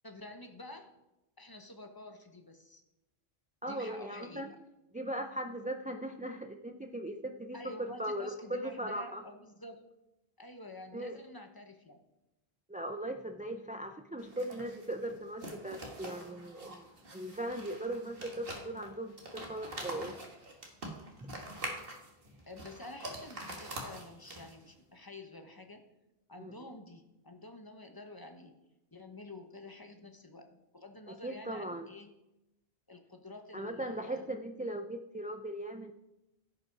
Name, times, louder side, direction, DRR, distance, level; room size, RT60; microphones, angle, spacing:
voice 1, 0.0-0.9 1.4-2.8 3.7-4.6 7.5-9.8 10.4-12.0 22.5-25.8 26.3-28.6 28.9-32.1 32.9-34.3, left 2 dB, 20° left, 5 dB, 0.9 m, -49 dB
voice 2, 3.6-4.5 4.9-9.2 10.9-11.2 12.7-16.9 17.1-20.2 21.2-21.3 26.4-26.5 31.2-31.9 33.5-35.9, right 1 dB, 15° right, 5 dB, 0.3 m, -39 dB
sound 1, 14.2-24.7, right 1 dB, 60° right, 1.9 m, -45 dB
16.0 x 5.4 x 4.7 m, 0.93 s
omnidirectional pair, 1.1 m